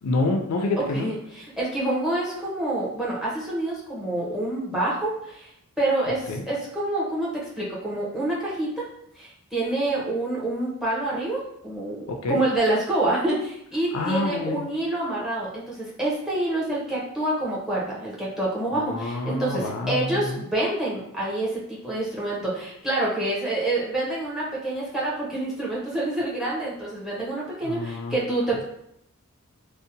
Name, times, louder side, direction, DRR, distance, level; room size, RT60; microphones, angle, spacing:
voice 1, 0.0-1.1 6.3-6.4 12.1-12.4 13.9-14.6 18.7-20.4 27.6-28.2, left 2 dB, 75° left, 3 dB, 0.4 m, -27 dB
voice 2, 1.6-5.5 5.8-7.3 7.6-8.7 9.2-28.6, right 1 dB, ahead, -5 dB, 0.6 m, -27 dB
2.7 x 2.0 x 2.6 m, 0.74 s
head